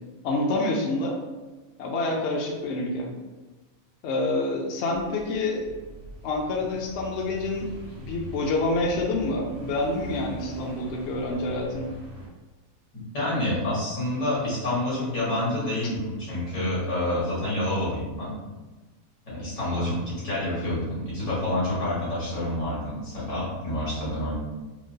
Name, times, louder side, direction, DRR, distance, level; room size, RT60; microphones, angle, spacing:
voice 1, 0.2-1.2 1.8-3.1 4.0-5.7 6.2-11.9, left 2 dB, 65° left, -1 dB, 0.7 m, -27 dB
sound 1, 4.9-12.3, right 1 dB, 60° right, 1.2 m, -42 dB
voice 2, 12.9-18.3 19.3-24.3, left 1 dB, 85° left, -9 dB, 1.9 m, -28 dB
4.4 x 2.0 x 2.6 m, 1.2 s
omnidirectional pair, 1.4 m